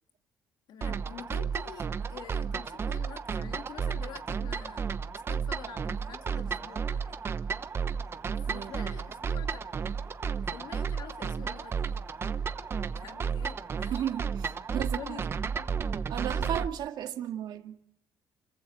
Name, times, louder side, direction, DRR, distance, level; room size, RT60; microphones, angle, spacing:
voice 1, 0.7-5.0 5.3-7.2 8.5-9.7 10.5-12.2 12.9-14.0 14.8-15.9 16.4-16.7, left 9 dB, 70° left, 1.9 m, -47 dB
sound 1, 0.8-16.7, right 6 dB, 30° right, 1.0 m, -33 dB
sound 2, 6.0-14.0, left 3 dB, 50° left, 7.3 m, -62 dB
voice 2, 13.9-15.3 16.1-17.8, right 10 dB, 65° right, 2.1 m, -35 dB
29.0 x 15.5 x 7.5 m
cardioid pair, 145°, 8 cm